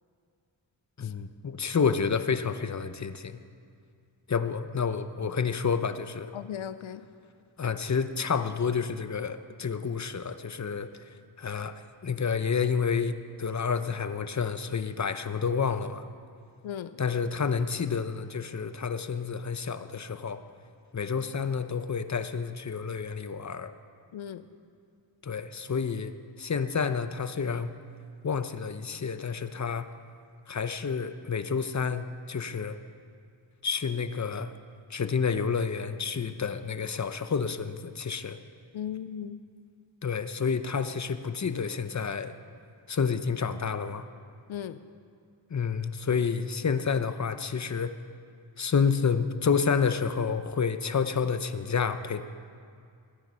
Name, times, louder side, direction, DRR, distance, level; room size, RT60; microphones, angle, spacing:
voice 1, 1.0-3.3 4.3-6.3 7.6-10.9 11.4-11.7 12.0-16.0 17.0-20.4 20.9-23.7 25.2-26.1 26.4-27.7 28.2-29.9 30.5-32.8 33.6-34.5 34.9-38.4 40.0-42.3 42.9-44.0 45.5-47.9 48.6-52.2, left 6 dB, 35° left, 11 dB, 0.8 m, -29 dB
voice 2, 6.3-7.1 16.6-17.0 24.1-24.5 38.7-39.4 44.5-44.8, left 9 dB, 80° left, 13 dB, 0.6 m, -37 dB
20.5 x 9.2 x 5.6 m, 2.3 s
cardioid pair, 55°, 46 cm